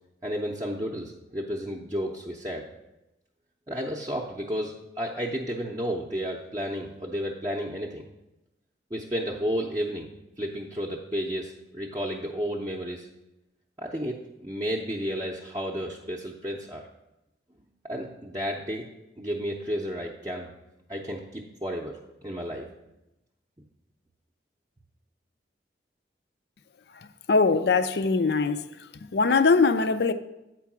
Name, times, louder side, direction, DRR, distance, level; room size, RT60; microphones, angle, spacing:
voice 1, 0.2-2.6 3.7-8.0 8.9-10.1 10.4-13.1 13.8-16.9 17.8-18.9 19.2-20.5 20.9-22.7, equal, 20° right, 0.6 m, -32 dB
voice 2, 27.3-28.6 29.1-30.1, left 4 dB, 65° left, 0.5 m, -21 dB
8.5 x 4.6 x 6.0 m
head